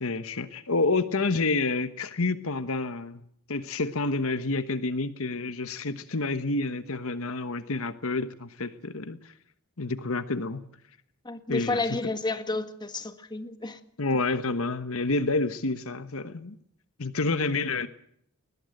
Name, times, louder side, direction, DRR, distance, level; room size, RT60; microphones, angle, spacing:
voice 1, 0.0-3.2 3.5-9.3 9.8-10.6 11.5-12.0 14.0-16.6 17.0-17.9, left 3 dB, 65° left, 11 dB, 1.2 m, -29 dB
voice 2, 11.2-13.8, left 2 dB, 20° left, 9 dB, 1.8 m, -31 dB
21.5 x 20.5 x 7.8 m, 0.67 s
head